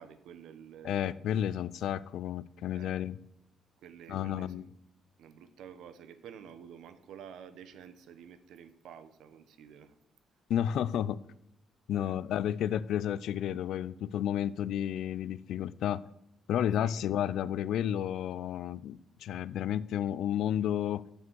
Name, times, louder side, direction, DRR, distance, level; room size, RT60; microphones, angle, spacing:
voice 1, 0.0-1.0 2.7-3.0 3.8-4.7 5.2-10.0 11.9-12.2 16.7-17.0, right 8 dB, 80° right, 11 dB, 0.9 m, -50 dB
voice 2, 0.8-3.2 4.1-4.7 10.5-11.2 11.9-16.0 16.5-21.0, left 10 dB, 75° left, 17 dB, 0.4 m, -31 dB
7.0 x 6.9 x 6.2 m, 0.79 s
cardioid pair, 90°, 0 cm